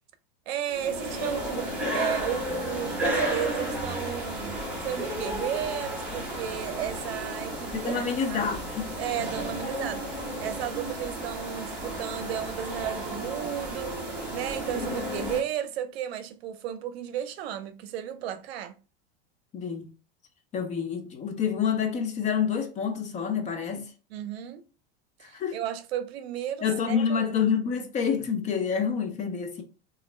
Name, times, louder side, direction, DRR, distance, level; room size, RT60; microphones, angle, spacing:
voice 1, 0.5-8.0 8.3-8.5 9.0-18.8 24.1-24.7 25.3-27.3, right 10 dB, 75° right, 0.6 m, -34 dB
sound 1, 0.7-15.4, equal, 5° right, 1.1 m, -33 dB
voice 2, 7.7-8.8 19.5-19.9 20.5-23.9 25.2-25.6 26.6-29.6, left 7 dB, 25° left, 0.6 m, -28 dB
3.9 x 2.4 x 3.2 m
supercardioid pair, 145°, 31 cm